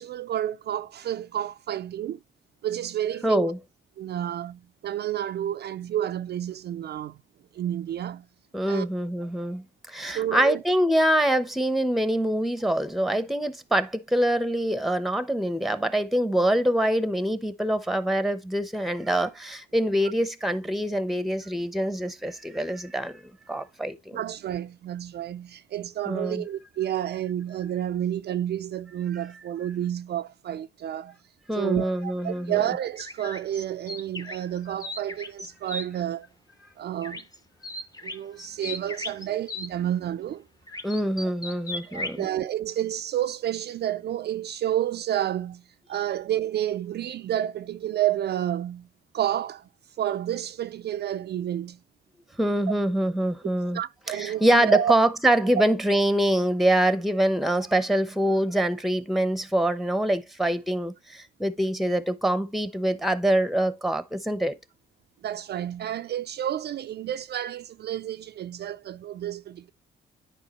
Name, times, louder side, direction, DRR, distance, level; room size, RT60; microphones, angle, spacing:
voice 1, 0.0-2.2 2.6-3.5 4.0-7.2 7.5-8.2 8.7-8.9 10.1-10.6 24.1-31.2 31.5-36.3 36.8-37.2 38.0-40.4 41.7-45.6 45.9-48.9 49.1-49.7 50.0-51.8 53.7-54.9 65.2-69.7, right 11 dB, 55° right, 0.4 m, -30 dB
voice 2, 3.2-3.6 8.5-23.2 23.5-24.2 26.1-26.4 31.5-32.6 40.8-42.3 52.4-53.8 54.1-64.6, right 1 dB, ahead, 0.8 m, -25 dB
sound 1, 33.0-35.9 37.0-37.4 37.6-39.7 40.7-42.2, left 2 dB, 20° left, 1.0 m, -36 dB
9.8 x 4.8 x 3.0 m
cardioid pair, 90°, 20 cm